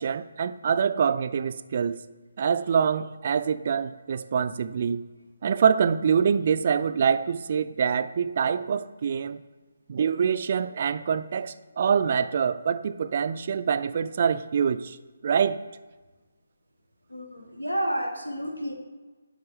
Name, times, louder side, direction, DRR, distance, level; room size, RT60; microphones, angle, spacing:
voice 1, 0.0-2.0 2.4-5.1 5.4-9.4 9.9-15.0 15.2-15.6, right 7 dB, 40° right, 13 dB, 0.3 m, -25 dB
voice 2, 17.1-18.7, equal, 90° left, 4 dB, 1.2 m, -30 dB
11.0 x 4.5 x 3.3 m, 1.3 s
figure-of-eight pair, 145°, 0 cm